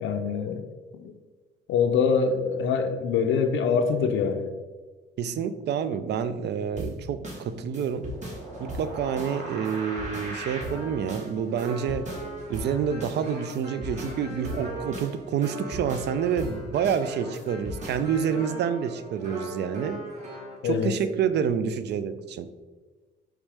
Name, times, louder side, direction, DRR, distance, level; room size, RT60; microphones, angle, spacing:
voice 1, 0.0-0.7 0.9-1.1 1.7-4.5 20.6-20.9, left 6 dB, 75° left, 6 dB, 0.4 m, -24 dB
voice 2, 5.2-8.1 8.6-12.1 12.5-20.1 20.6-22.5, right 7 dB, 60° right, 12 dB, 0.4 m, -28 dB
sound 1, 6.8-20.6, right 1 dB, 35° right, 1.4 m, -38 dB
4.7 x 3.1 x 3.3 m, 1.3 s
cardioid pair, 90°, 20 cm